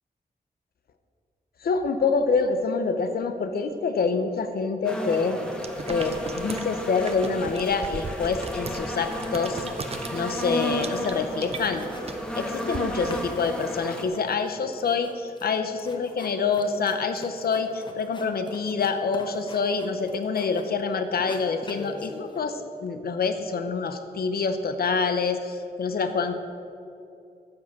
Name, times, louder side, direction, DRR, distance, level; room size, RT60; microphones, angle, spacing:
voice 1, 1.6-5.4 5.9-9.7 10.1-11.9 12.4-26.3, left 5 dB, 80° left, 8 dB, 0.9 m, -26 dB
sound 1, 4.8-14.0, equal, 5° left, 1.3 m, -33 dB
sound 2, 5.6-12.8, right 4 dB, 40° right, 0.7 m, -38 dB
sound 3, 10.6-11.3 11.5-12.8 13.1-20.8 21.1-22.4, left 2 dB, 30° left, 1.2 m, -44 dB
12.5 x 7.6 x 6.1 m, 2.6 s
wide cardioid pair, 100°, 16 cm